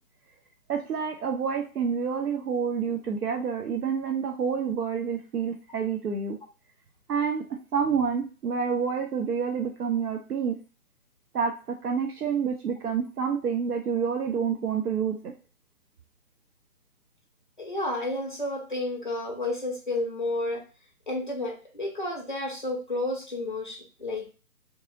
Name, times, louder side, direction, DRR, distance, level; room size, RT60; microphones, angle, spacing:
voice 1, 0.7-6.4 7.1-10.6 11.3-15.3, right 6 dB, 80° right, 3 dB, 0.6 m, -28 dB
voice 2, 17.6-20.6 21.1-24.3, left 2 dB, 35° left, 1 dB, 0.4 m, -31 dB
2.6 x 2.5 x 2.5 m, 0.34 s
figure-of-eight pair, 140°, 45 cm